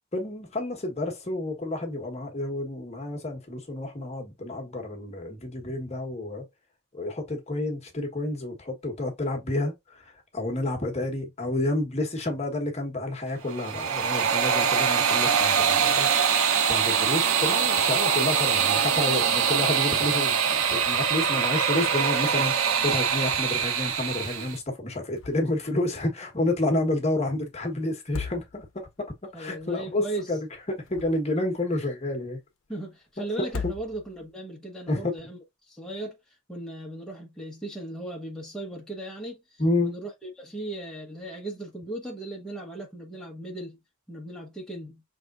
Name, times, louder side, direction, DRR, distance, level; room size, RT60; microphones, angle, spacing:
voice 1, 0.1-6.5 6.9-16.3 16.7-30.0 30.3-32.4 33.2-33.3 34.9-35.1 39.6-40.0, left 2 dB, 30° left, 1.2 m, -30 dB
sound 1, 13.4-24.6, right 7 dB, 90° right, 0.8 m, -24 dB
sound 2, 25.1-25.7 25.9-26.0 27.9-28.9 30.6-31.5 33.4-34.3, left 4 dB, 70° left, 0.7 m, -37 dB
voice 2, 29.3-30.4 32.7-35.4 35.7-43.8 44.1-45.0, right 1 dB, 5° left, 1.1 m, -37 dB
5.7 x 3.5 x 2.5 m
head